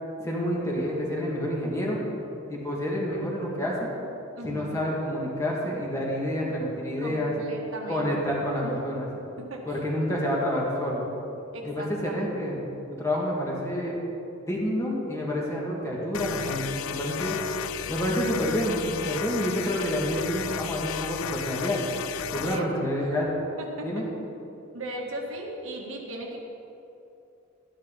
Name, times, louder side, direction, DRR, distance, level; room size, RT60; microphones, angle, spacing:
voice 1, 0.2-2.0 2.5-3.9 4.4-7.3 7.9-9.1 9.7-11.0 11.6-12.7 13.0-14.0 14.5-17.4 17.9-21.8 22.3-23.3 23.8-24.1, equal, 15° left, -4 dB, 2.2 m, -28 dB
voice 2, 4.4-4.8 7.0-8.1 8.6-8.7 9.4-9.8 11.5-12.3 17.4-17.7 22.4-22.7 23.0-23.1 23.6-23.9 24.7-26.4, right 1 dB, 75° right, -1 dB, 1.8 m, -37 dB
sound 1, 16.1-22.7, left 9 dB, 70° left, 0.4 m, -34 dB
13.0 x 11.5 x 4.1 m, 2.7 s
head